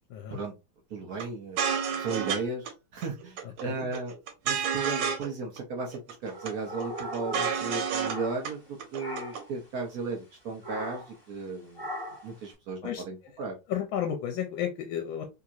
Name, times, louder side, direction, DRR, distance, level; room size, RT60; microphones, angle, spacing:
voice 1, 0.9-2.7 2.9-4.1 4.4-11.8 12.2-13.6, right 3 dB, 60° right, 1.0 m, -35 dB
sound 1, 1.2-1.3 1.6-2.4 2.7-2.8 3.0-3.6 3.9-5.3 5.6-5.7 5.9-6.5 6.8-8.2 8.4-8.5 8.8-9.4, right 7 dB, 90° right, 1.7 m, -30 dB
voice 2, 3.4-3.9 12.8-13.0 13.7-15.2, left 9 dB, 80° left, 1.3 m, -32 dB
sound 2, 6.3-8.7 9.0-9.5 10.6-11.2 11.8-12.3, equal, 15° left, 1.3 m, -39 dB
3.5 x 2.9 x 2.5 m
omnidirectional pair, 2.2 m